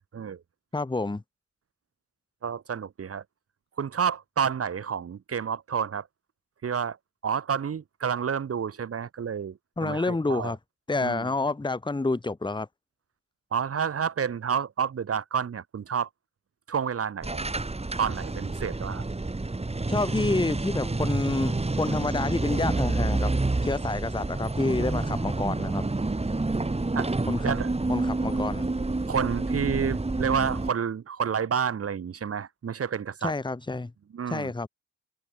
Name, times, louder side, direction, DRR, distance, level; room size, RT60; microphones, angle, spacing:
voice 1, 0.7-1.2 9.8-10.6 10.9-12.7 19.9-23.3 23.6-25.9 27.3-27.5 27.9-28.7 33.2-33.9 34.3-34.7, left 3 dB, 15° left, 1.6 m, -28 dB
voice 2, 2.4-3.2 3.8-6.1 6.6-7.0 7.2-10.5 11.0-11.3 13.5-16.1 16.7-17.5 18.0-19.0 26.9-27.1 27.4-27.7 29.1-33.3 34.1-34.5, right 7 dB, 40° right, 1.8 m, -29 dB
sound 1, 17.2-30.7, right 2 dB, 20° right, 5.4 m, -28 dB
open air
supercardioid pair, 65°, 34 cm